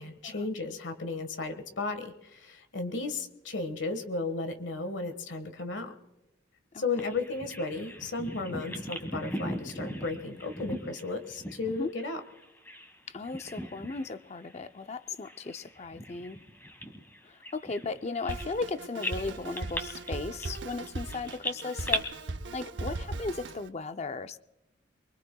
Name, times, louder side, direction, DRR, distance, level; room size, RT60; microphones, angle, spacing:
voice 1, 0.0-5.9 6.8-12.2, left 3 dB, 80° left, 8 dB, 1.5 m, -34 dB
Bird vocalization bird call bird song, 7.0-12.9 13.2-14.1 14.4-14.6 15.2-18.7 19.0-22.0, left 1 dB, 10° left, 1.5 m, -38 dB
voice 2, 13.1-16.4 17.2-22.1 22.5-24.4, left 3 dB, 35° left, 11 dB, 0.5 m, -36 dB
Drum kit, 18.3-23.7, right 2 dB, 75° right, 0.8 m, -39 dB
24.0 x 23.0 x 2.3 m, 0.95 s
head